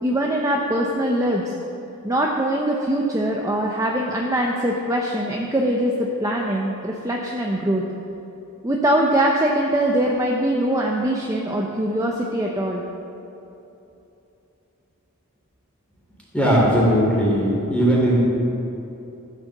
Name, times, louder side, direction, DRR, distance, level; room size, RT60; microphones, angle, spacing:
voice 1, 0.0-1.4 2.0-7.8 8.6-12.8, right 1 dB, 15° right, -1 dB, 0.7 m, -22 dB
voice 2, 16.3-18.2, equal, 5° left, -5 dB, 3.2 m, -18 dB
13.5 x 7.5 x 6.6 m, 2.9 s
head